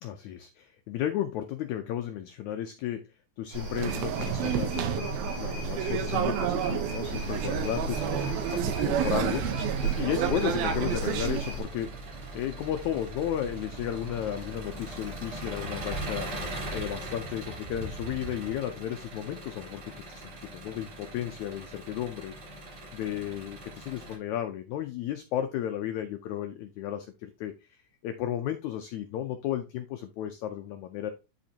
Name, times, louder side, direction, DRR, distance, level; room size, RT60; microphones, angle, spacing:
voice 1, 0.0-3.0 3.4-8.2 8.5-16.3 16.7-22.3 22.9-31.1, left 11 dB, 90° left, 7 dB, 1.6 m, -34 dB
sound 1, 3.5-11.6, right 2 dB, 75° right, 6.2 m, -35 dB
sound 2, 3.8-11.4, right 10 dB, 90° right, 2.7 m, -30 dB
Engine, 7.0-24.2, right 2 dB, 45° right, 4.3 m, -40 dB
12.0 x 4.3 x 2.8 m, 0.28 s
omnidirectional pair, 4.2 m